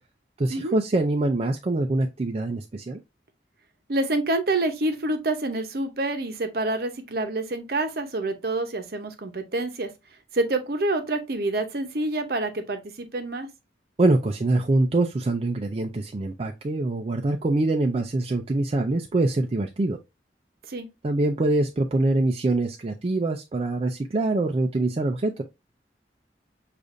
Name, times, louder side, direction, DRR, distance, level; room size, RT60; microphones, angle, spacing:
voice 1, 0.4-3.0 14.0-20.0 21.0-25.4, right 2 dB, 35° right, 0.4 m, -24 dB
voice 2, 3.9-9.9 10.3-13.5 20.7-20.9, right 2 dB, 60° right, 0.7 m, -27 dB
6.5 x 2.5 x 2.5 m
head